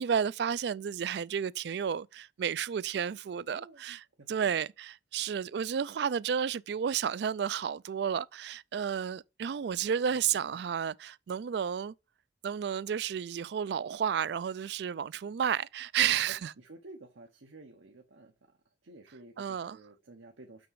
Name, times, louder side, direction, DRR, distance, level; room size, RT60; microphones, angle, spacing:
voice 1, 0.0-4.0 4.3-11.9 12.4-16.5 19.4-19.8, right 8 dB, 60° right, 0.3 m, -32 dB
voice 2, 3.5-3.8 4.2-4.5 10.1-10.7 16.4-20.7, right 2 dB, 85° right, 1.0 m, -53 dB
6.2 x 6.0 x 4.7 m
head